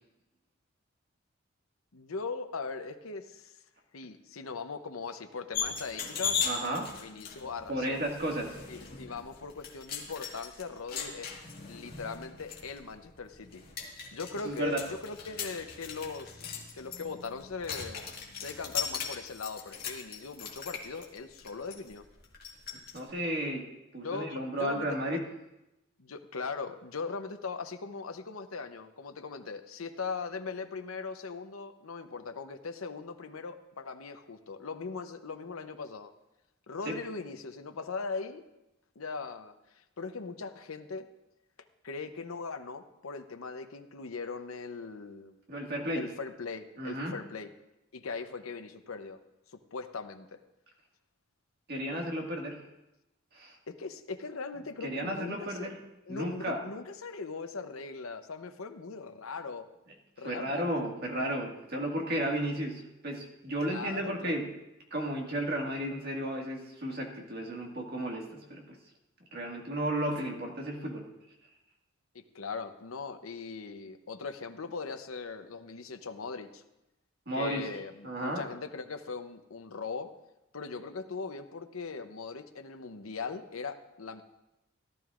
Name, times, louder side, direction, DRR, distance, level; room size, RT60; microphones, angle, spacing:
voice 1, 1.9-3.6 3.9-6.5 6.9-8.0 8.7-11.4 11.7-13.6 14.1-18.1 18.4-22.1 24.0-25.0 26.0-36.1 36.7-38.4 39.0-41.1 41.8-45.3 45.9-47.5 47.9-49.2 49.5-50.4 53.7-55.7 56.0-59.7 60.2-60.9 63.6-64.4 72.1-76.6 77.3-80.1 80.5-84.2, left 4 dB, 90° left, 8 dB, 0.8 m, -40 dB
sound 1, 5.5-23.0, left 6 dB, 45° left, 1.8 m, -39 dB
voice 2, 6.4-6.9 7.7-8.5 14.4-14.8 22.9-23.6 23.9-25.2 36.9-37.0 45.5-46.0 46.8-47.2 51.7-52.6 53.3-53.6 54.8-55.8 56.1-56.6 60.2-64.5 64.9-68.8 69.3-71.0 77.3-77.7 78.0-78.4, right 1 dB, 50° right, 0 dB, 1.9 m, -33 dB
17.0 x 12.5 x 2.5 m, 0.91 s
head